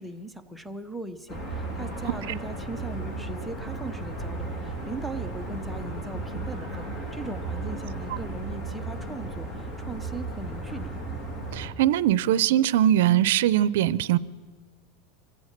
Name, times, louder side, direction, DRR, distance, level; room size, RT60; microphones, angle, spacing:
voice 1, 0.0-10.9, right 2 dB, ahead, 0.7 m, -39 dB
sound 1, 1.3-11.7, right 2 dB, 20° left, 3.0 m, -35 dB
voice 2, 11.5-14.2, right 12 dB, 70° right, 0.6 m, -21 dB
24.5 x 16.0 x 6.6 m
supercardioid pair, 165°, 0 cm